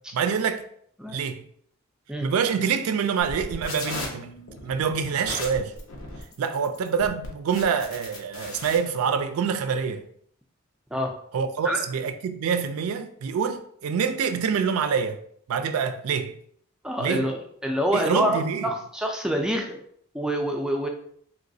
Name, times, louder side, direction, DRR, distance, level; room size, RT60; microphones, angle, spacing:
voice 1, 0.1-0.6 1.1-1.4 2.2-4.3 4.6-5.7 6.4-10.0 11.3-15.2 15.5-16.3 17.0-17.3 17.9-18.7, right 6 dB, 85° right, 0.3 m, -26 dB
sound 1, 3.2-8.8, left 2 dB, 80° left, 0.8 m, -37 dB
voice 2, 16.8-19.8 20.1-20.9, equal, 5° right, 0.3 m, -26 dB
3.0 x 3.0 x 2.6 m
head